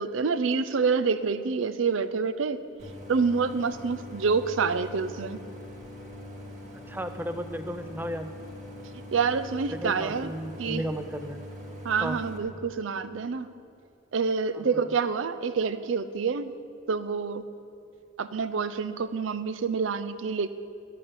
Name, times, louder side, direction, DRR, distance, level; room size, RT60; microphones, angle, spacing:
voice 1, 0.0-2.6 3.1-5.4 9.1-10.3 10.6-10.8 11.8-13.5 14.1-16.5 16.9-17.5 18.2-20.5, right 5 dB, 85° right, 13 dB, 0.5 m, -27 dB
Idling, 2.8-12.4, left 1 dB, 40° right, 1.6 m, -43 dB
voice 2, 6.7-8.3 9.7-11.4 12.0-12.2 14.5-14.9, equal, 10° right, 9 dB, 0.4 m, -34 dB
11.0 x 7.6 x 6.8 m, 2.5 s
head